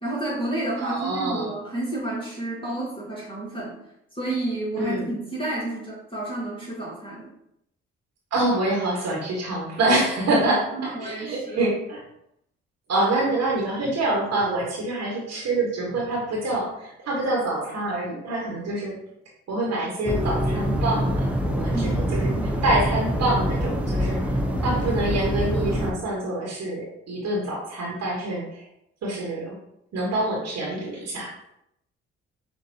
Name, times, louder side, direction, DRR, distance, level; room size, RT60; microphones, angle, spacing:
voice 1, 0.0-3.7 4.1-7.3 10.7-11.6 21.7-22.1, right 2 dB, 15° left, -6 dB, 1.5 m, -30 dB
voice 2, 0.8-1.5 4.8-5.0 8.3-12.0 12.9-19.0 19.5-24.3 24.6-28.6 29.0-29.5 29.9-31.3, right 2 dB, 55° right, -3 dB, 1.3 m, -26 dB
sound 1, 20.1-25.9, equal, 5° right, 0.7 m, -25 dB
6.1 x 2.5 x 2.7 m, 0.78 s
hypercardioid pair, 45°, 30 cm